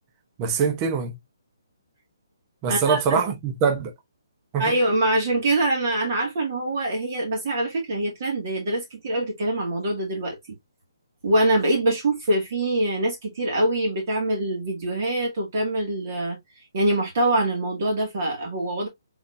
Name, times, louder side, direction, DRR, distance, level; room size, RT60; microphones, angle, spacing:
voice 1, 0.4-1.2 2.6-3.9 4.5-4.7, right 6 dB, 15° right, 0.8 m, -23 dB
voice 2, 2.7-3.2 4.6-10.4 11.2-16.4 16.7-18.9, right 1 dB, 35° right, 2.1 m, -24 dB
4.1 x 4.1 x 2.5 m
hypercardioid pair, 170°, 2 cm